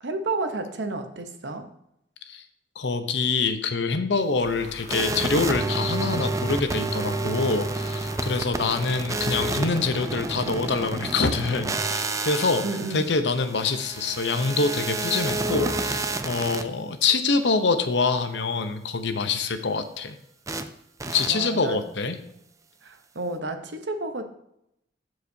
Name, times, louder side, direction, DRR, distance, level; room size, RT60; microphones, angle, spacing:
voice 1, 0.0-1.7 12.6-13.1 21.3-21.8 22.8-24.3, right 2 dB, 80° right, 7 dB, 0.9 m, -31 dB
voice 2, 2.8-12.6 12.9-20.2 21.1-22.2, left 4 dB, 70° left, 9 dB, 0.8 m, -25 dB
sound 1, 4.4-9.4, left 2 dB, 45° left, 1.4 m, -45 dB
sound 2, 4.9-16.6 20.5-20.6 21.0-21.3, right 2 dB, 20° right, 0.4 m, -29 dB
13.5 x 4.9 x 2.7 m, 0.79 s
head